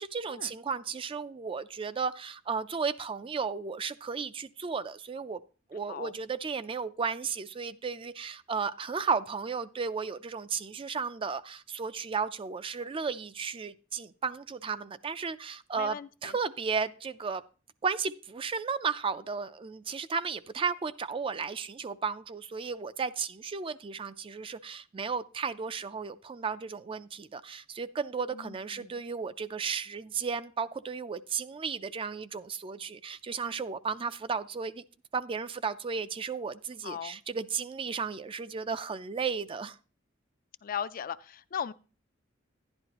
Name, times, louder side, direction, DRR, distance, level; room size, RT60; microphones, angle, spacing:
voice 1, 0.0-5.4 5.7-17.4 17.8-34.8 35.1-39.8, right 5 dB, 25° right, 0.4 m, -34 dB
voice 2, 15.8-16.4 28.3-29.0 36.8-37.2 40.6-41.7, left 8 dB, 45° left, 0.4 m, -38 dB
11.0 x 10.5 x 2.9 m
head